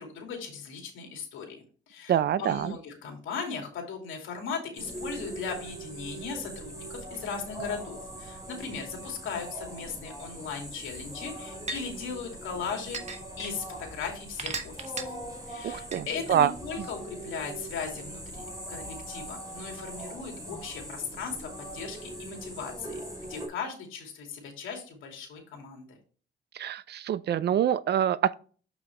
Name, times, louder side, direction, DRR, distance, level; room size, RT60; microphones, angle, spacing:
voice 1, 0.0-15.2 15.5-23.0 23.3-26.0, left 5 dB, 80° left, 2.6 m, -38 dB
voice 2, 2.1-2.7 15.6-16.5 16.8-16.9 26.5-28.3, right 10 dB, 55° right, 0.5 m, -26 dB
sound 1, 4.7-23.5, right 1 dB, 15° right, 4.2 m, -41 dB
sound 2, 10.7-10.8 11.7-11.8 12.9-13.5 14.4-15.0 15.9-16.0, right 4 dB, 35° right, 1.4 m, -34 dB
7.3 x 6.1 x 3.3 m
cardioid pair, 90°, 20 cm